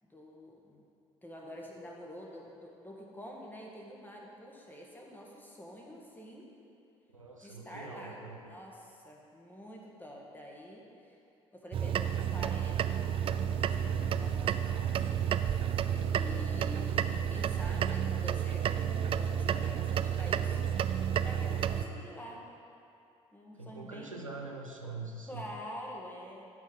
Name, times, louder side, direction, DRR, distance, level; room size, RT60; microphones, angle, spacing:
voice 1, 0.0-0.8 1.2-6.5 7.4-11.2 11.5-15.1 16.1-20.6 21.2-22.4 23.3-24.1 25.3-26.5, equal, 10° left, -2 dB, 1.7 m, -47 dB
voice 2, 7.1-8.5 15.9-16.5 21.8-22.2 23.5-25.5, right 3 dB, 90° right, 1 dB, 0.7 m, -44 dB
sound 1, 11.7-21.9, right 9 dB, 35° right, 0.4 m, -31 dB
12.5 x 4.6 x 5.4 m, 2.7 s
figure-of-eight pair, 50°, 16 cm